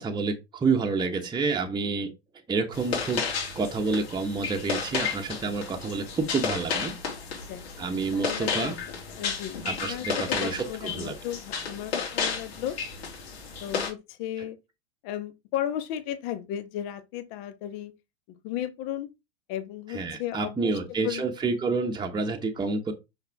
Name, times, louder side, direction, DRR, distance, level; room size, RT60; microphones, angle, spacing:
voice 1, 0.0-2.1 2.5-3.2 3.5-6.9 7.8-8.8 9.6-11.2 19.9-22.9, right 4 dB, 15° right, 1.1 m, -28 dB
sound 1, 2.7-13.9, left 6 dB, 65° left, 2.6 m, -32 dB
voice 2, 8.1-8.8 9.1-12.8 13.6-14.6 15.0-17.9 18.3-19.1 19.5-21.3, left 11 dB, 45° left, 1.3 m, -35 dB
5.9 x 5.7 x 3.5 m
figure-of-eight pair, 90°, 34 cm